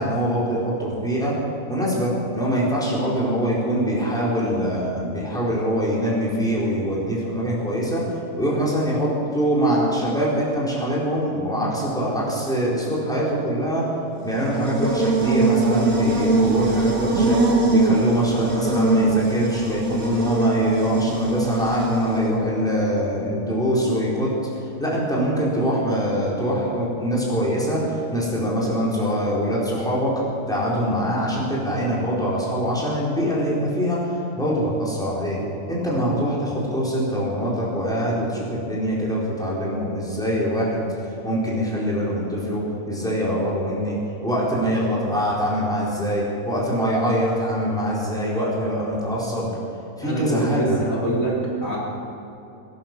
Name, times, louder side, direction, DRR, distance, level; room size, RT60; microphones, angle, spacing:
voice 1, 0.0-1.3 1.7-8.0 8.4-13.8 14.2-17.4 17.7-24.3 24.8-30.1 30.5-34.0 34.4-35.4 35.7-49.5 50.0-50.8, equal, ahead, -7 dB, 4.2 m, -23 dB
Buzz, 14.2-22.3, right 2 dB, 70° right, 2.4 m, -22 dB
voice 2, 50.0-51.8, right 1 dB, 70° left, -5 dB, 3.7 m, -25 dB
20.5 x 11.0 x 6.2 m, 2.8 s
omnidirectional pair, 1.5 m